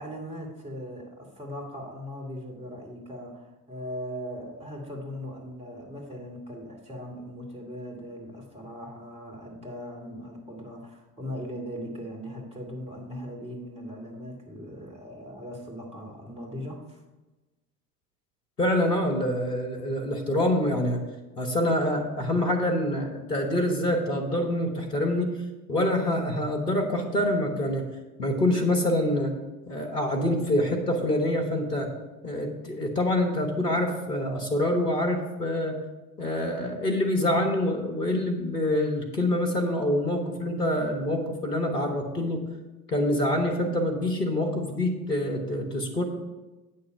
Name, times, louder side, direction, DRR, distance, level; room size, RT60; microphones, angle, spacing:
voice 1, 0.0-17.0, equal, 15° right, 0 dB, 2.4 m, -39 dB
voice 2, 18.6-21.0 21.4-25.3 25.7-27.9 28.2-29.3 29.7-31.9 32.2-35.8 36.2-42.4 42.9-46.0, left 1 dB, 85° left, 0 dB, 1.4 m, -26 dB
8.2 x 6.3 x 5.7 m, 1.1 s
figure-of-eight pair, 65°, 46 cm